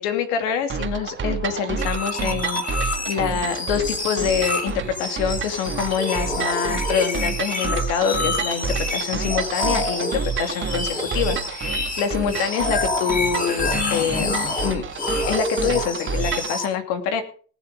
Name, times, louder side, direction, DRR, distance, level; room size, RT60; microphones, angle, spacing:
voice 1, 0.0-4.7 5.0-14.3 14.6-14.8 15.3-17.2, left 7 dB, 70° left, 7 dB, 2.6 m, -25 dB
sound 1, 0.7-16.6, right 6 dB, 35° right, 1.8 m, -29 dB
sound 2, 1.8-16.7, left 2 dB, 25° left, 3.2 m, -28 dB
19.0 x 7.0 x 5.2 m, 0.42 s
supercardioid pair, 105°, 34 cm